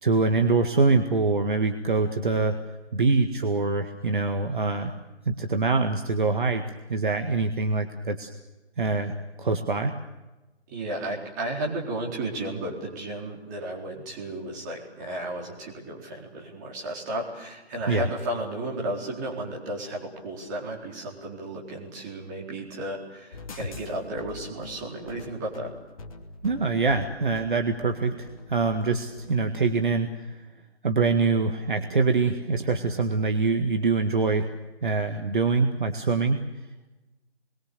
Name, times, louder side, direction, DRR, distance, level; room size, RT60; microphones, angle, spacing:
voice 1, 0.0-2.6 2.9-4.9 5.3-6.6 6.9-8.3 8.8-9.1 9.4-10.0 17.9-18.1 26.4-30.4 30.8-34.5 34.8-36.4, right 4 dB, 50° right, 5 dB, 1.9 m, -24 dB
voice 2, 10.7-25.7, right 1 dB, 15° right, -2 dB, 4.2 m, -33 dB
sound 1, 23.3-29.4, left 3 dB, 30° left, 2.8 m, -43 dB
28.5 x 22.5 x 6.8 m, 1.1 s
figure-of-eight pair, 155°, 33 cm